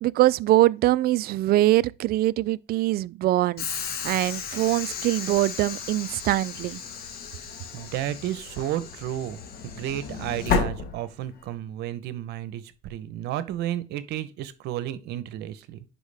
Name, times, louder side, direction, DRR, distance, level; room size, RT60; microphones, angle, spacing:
voice 1, 0.0-3.6 4.0-6.8, right 15 dB, 65° right, 0.4 m, -23 dB
Train / Sliding door, 3.6-11.5, left 5 dB, 65° left, 1.5 m, -33 dB
voice 2, 7.7-15.8, right 12 dB, 80° right, 0.8 m, -32 dB
10.5 x 4.5 x 3.4 m
cardioid pair, 110°, 17 cm